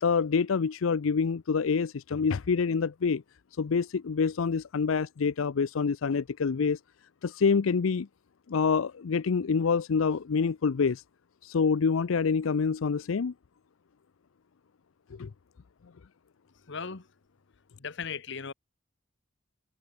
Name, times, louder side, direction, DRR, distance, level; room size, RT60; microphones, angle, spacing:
voice 1, 0.0-3.2 3.6-6.8 7.2-8.1 8.5-11.0 11.4-13.3 15.1-15.3, left 5 dB, 90° left, 0.5 m, -26 dB
voice 2, 16.7-17.1 17.8-18.5, left 6 dB, 60° left, 1.1 m, -37 dB
head